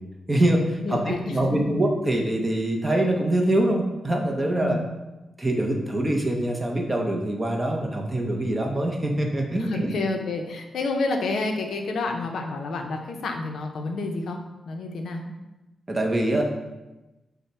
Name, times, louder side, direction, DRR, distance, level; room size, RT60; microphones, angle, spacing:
voice 1, 0.3-4.8 5.4-9.9 15.9-16.4, right 1 dB, 15° right, 1 dB, 0.5 m, -24 dB
voice 2, 0.8-1.6 4.6-4.9 9.6-14.4 14.7-15.2, left 3 dB, 65° left, 3 dB, 0.5 m, -29 dB
5.3 x 2.0 x 4.5 m, 1.0 s
wide cardioid pair, 180°, 0 cm